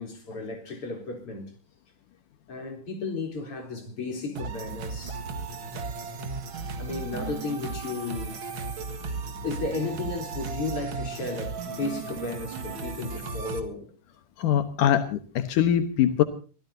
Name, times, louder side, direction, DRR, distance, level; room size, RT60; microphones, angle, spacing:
voice 1, 0.0-1.5 2.5-5.2 6.3-6.4 6.8-8.4 9.4-13.9, left 3 dB, 45° left, 4.6 m, -34 dB
sound 1, 4.4-13.6, right 4 dB, 45° right, 2.2 m, -35 dB
voice 2, 14.4-16.2, left 10 dB, 85° left, 2.7 m, -23 dB
25.0 x 17.0 x 2.8 m
omnidirectional pair, 3.6 m